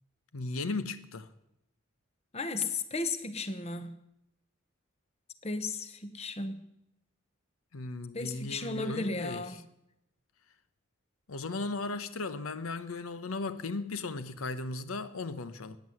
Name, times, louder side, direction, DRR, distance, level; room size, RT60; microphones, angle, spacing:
voice 1, 0.3-1.3 7.7-9.4 11.3-15.8, left 3 dB, 85° left, 0.8 m, -36 dB
voice 2, 2.3-4.0 5.4-6.7 8.1-9.6, left 3 dB, 30° left, 0.9 m, -35 dB
14.0 x 9.5 x 7.7 m
head